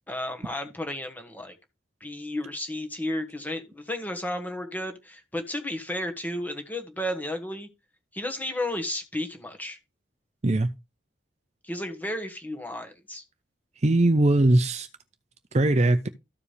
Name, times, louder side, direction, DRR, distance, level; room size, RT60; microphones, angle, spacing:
voice 1, 0.1-1.6 2.0-7.7 8.1-9.8 11.6-13.2, left 1 dB, 10° left, 1.4 m, -33 dB
voice 2, 13.8-14.9 15.5-16.1, right 1 dB, 35° right, 0.6 m, -20 dB
14.0 x 4.8 x 3.3 m
head